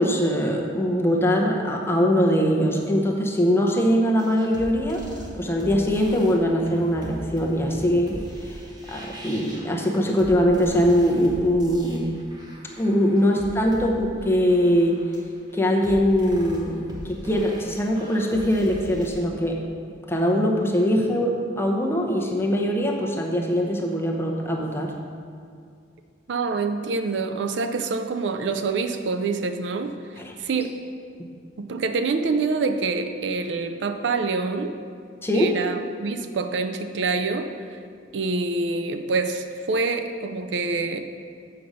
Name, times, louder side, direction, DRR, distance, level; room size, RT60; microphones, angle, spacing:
voice 1, 0.0-5.0 5.3-12.2 12.8-15.0 15.5-19.6 20.1-24.9 30.2-30.3 35.2-35.5, equal, 15° left, 0 dB, 0.8 m, -22 dB
sound 1, 4.0-19.2, equal, 20° right, 1.2 m, -41 dB
voice 2, 26.3-30.7 31.6-34.7 35.3-37.8 38.1-41.1, right 4 dB, 65° right, 8 dB, 0.4 m, -26 dB
7.7 x 5.4 x 5.0 m, 2.2 s
head